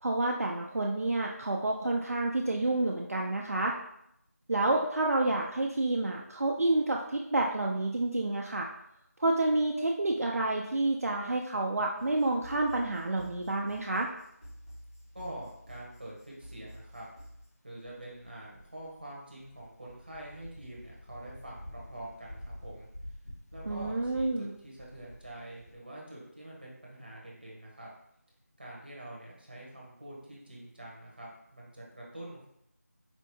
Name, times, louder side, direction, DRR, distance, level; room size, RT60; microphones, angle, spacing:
voice 1, 0.0-3.8 4.5-8.7 9.2-14.1 23.7-24.5, right 2 dB, 60° right, -1 dB, 0.4 m, -29 dB
sound 1, 12.0-17.5, equal, 15° left, 0.6 m, -50 dB
sound 2, 13.5-14.2 15.4-15.6 16.4-16.6 17.3-25.8, left 1 dB, 75° left, 0.7 m, -48 dB
voice 2, 15.1-17.1 17.6-22.9 23.5-27.9 28.6-32.5, right 1 dB, 35° right, -3 dB, 0.8 m, -45 dB
4.2 x 2.3 x 3.1 m, 0.77 s
figure-of-eight pair, 180°, 9 cm